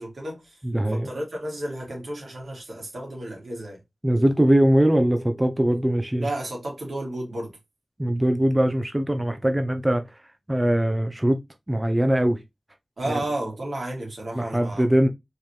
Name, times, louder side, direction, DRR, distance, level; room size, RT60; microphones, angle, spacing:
voice 1, 0.0-0.6 0.9-3.8 6.2-7.6 13.0-14.9, right 1 dB, 85° right, 2.6 m, -32 dB
voice 2, 0.6-1.1 4.0-6.3 8.0-10.0 10.5-11.4 11.7-12.4 14.3-15.1, right 1 dB, 20° right, 0.7 m, -21 dB
4.6 x 3.6 x 3.2 m
wide cardioid pair, 45°, 0 cm